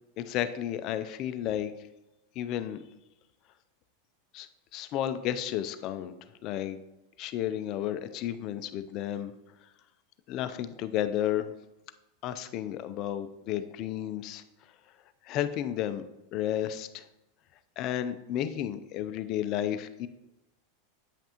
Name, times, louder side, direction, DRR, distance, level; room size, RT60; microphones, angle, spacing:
voice 1, 0.2-1.7 2.4-2.8 4.3-6.1 6.4-6.8 7.2-9.3 10.3-11.5 12.2-14.4 15.2-16.0 16.3-17.0 17.8-20.1, left 11 dB, 40° left, 11 dB, 0.4 m, -32 dB
8.8 x 5.8 x 2.9 m, 0.95 s
supercardioid pair, 140°, 0 cm